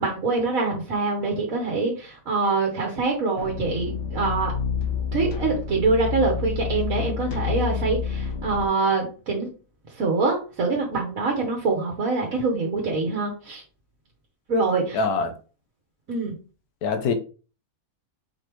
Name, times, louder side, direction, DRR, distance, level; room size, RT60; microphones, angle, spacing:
voice 1, 0.0-4.5 5.1-9.5 9.9-13.6 14.5-15.0 16.1-16.3, right 3 dB, 60° right, 1.5 m, -25 dB
sound 1, 3.4-8.7, left 7 dB, 60° left, 1.0 m, -29 dB
voice 2, 14.9-15.3 16.8-17.1, left 4 dB, 80° left, 1.3 m, -23 dB
4.9 x 3.4 x 3.0 m
omnidirectional pair, 1.6 m